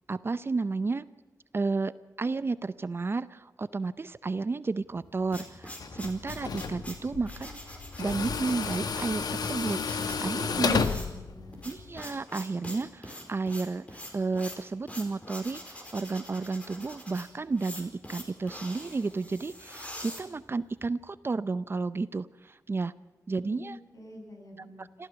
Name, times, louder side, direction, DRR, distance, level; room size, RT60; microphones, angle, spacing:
voice 1, 0.1-1.1 1.5-1.9 2.2-7.6 8.0-10.8 11.6-22.9 23.3-23.8 24.6-25.1, right 3 dB, 35° right, 15 dB, 0.6 m, -32 dB
sound 1, 4.9-20.9, left 1 dB, 20° left, 4.5 m, -45 dB
Tools, 5.8-12.1, left 5 dB, 85° left, 1.3 m, -32 dB
voice 2, 10.6-11.6 23.4-24.9, left 1 dB, 60° left, 1 dB, 7.9 m, -46 dB
27.0 x 15.0 x 7.0 m, 1.1 s
wide cardioid pair, 130°, 7 cm